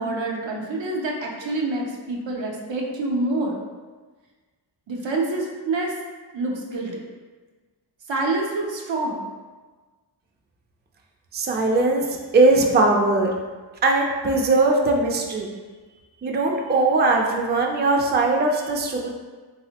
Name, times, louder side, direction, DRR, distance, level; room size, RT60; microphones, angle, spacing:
voice 1, 0.0-3.6 4.9-5.9 6.3-7.0 8.1-9.2, right 2 dB, 85° right, -1 dB, 0.6 m, -27 dB
voice 2, 11.3-12.1 12.3-13.3 13.8-15.5 16.2-19.1, right 2 dB, 25° right, 1 dB, 0.3 m, -20 dB
3.4 x 2.0 x 2.8 m, 1.4 s
wide cardioid pair, 50°, 44 cm